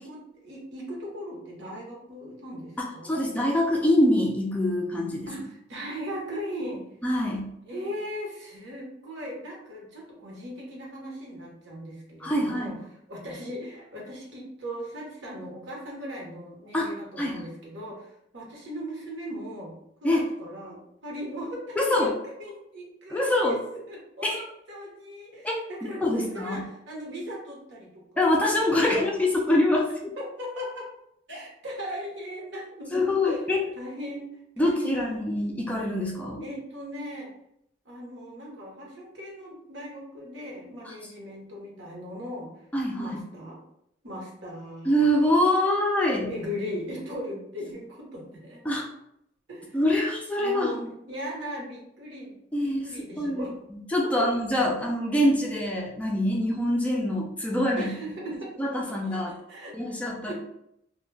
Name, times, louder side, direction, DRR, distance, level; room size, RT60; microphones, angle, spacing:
voice 1, 0.0-3.2 5.3-6.9 7.6-12.8 13.1-22.1 22.4-29.1 30.2-30.9 31.3-33.4 33.8-34.3 34.6-35.2 36.4-37.3 37.9-42.5 43.0-43.6 44.0-44.9 46.3-48.6 49.5-49.8 50.4-52.3 52.6-53.5 54.2-54.3 57.8-58.5 59.0-60.0 60.3-60.4, equal, 70° right, -3 dB, 0.9 m, -38 dB
voice 2, 3.0-5.3 7.0-7.5 12.2-12.8 16.7-17.4 20.0-20.2 21.8-22.1 23.1-23.6 24.2-24.4 25.4-25.5 26.0-26.6 28.2-30.1 32.9-33.6 34.6-36.4 40.9-41.0 42.7-43.2 44.8-46.3 48.7-48.9 49.7-50.7 52.5-52.9 53.2-57.9 58.6-59.3 59.7-60.3, left 1 dB, 5° left, -2 dB, 0.3 m, -25 dB
2.2 x 2.1 x 3.2 m, 0.76 s
head